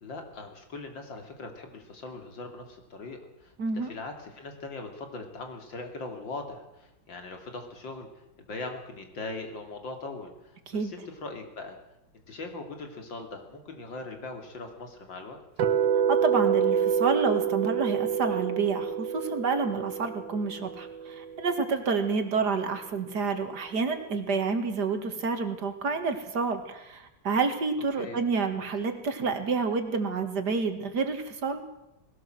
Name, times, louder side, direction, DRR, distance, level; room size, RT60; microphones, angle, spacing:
voice 1, 0.0-8.1 8.4-11.8 12.3-15.4 28.0-28.2, left 3 dB, 85° left, 5 dB, 3.5 m, -40 dB
voice 2, 3.6-3.9 10.7-10.9 16.1-31.6, right 4 dB, 60° right, 7 dB, 2.5 m, -29 dB
sound 1, 15.6-21.7, right 8 dB, 90° right, 2.0 m, -27 dB
19.5 x 17.5 x 7.7 m, 0.91 s
omnidirectional pair, 2.0 m